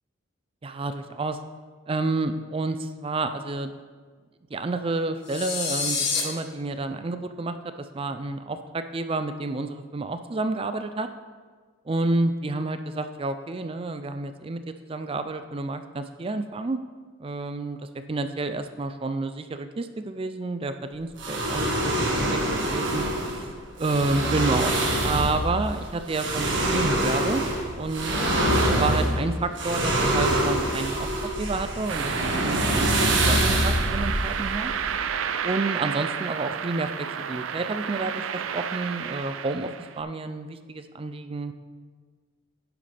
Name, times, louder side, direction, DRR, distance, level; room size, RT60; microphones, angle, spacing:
voice 1, 0.6-1.4 1.9-3.7 4.5-11.1 11.9-14.6 14.9-16.8 17.2-23.0 23.4-23.5 23.8-24.7 25.0-27.4 27.8-28.1 28.7-32.1 32.4-34.7 35.4-41.5, right 3 dB, 30° right, 9 dB, 0.4 m, -29 dB
sound 1, 5.3-6.2, left 5 dB, 55° left, 2.1 m, -27 dB
sound 2, 21.2-35.1, right 1 dB, 65° right, 1.7 m, -25 dB
sound 3, 31.9-40.0, right 7 dB, 85° right, 0.5 m, -31 dB
11.0 x 9.0 x 3.4 m, 1.5 s
head